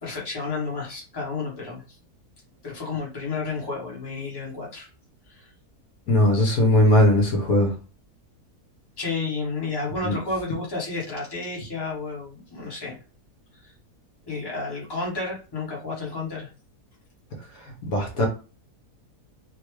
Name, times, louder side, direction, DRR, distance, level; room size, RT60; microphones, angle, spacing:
voice 1, 0.0-1.8 2.6-4.9 5.3-5.5 9.0-13.0 14.3-16.5, left 3 dB, 15° left, -4 dB, 1.0 m, -31 dB
voice 2, 6.1-7.7 10.0-10.2 17.8-18.3, left 1 dB, 60° left, 0 dB, 1.3 m, -19 dB
3.4 x 2.2 x 3.1 m, 0.34 s
omnidirectional pair, 1.7 m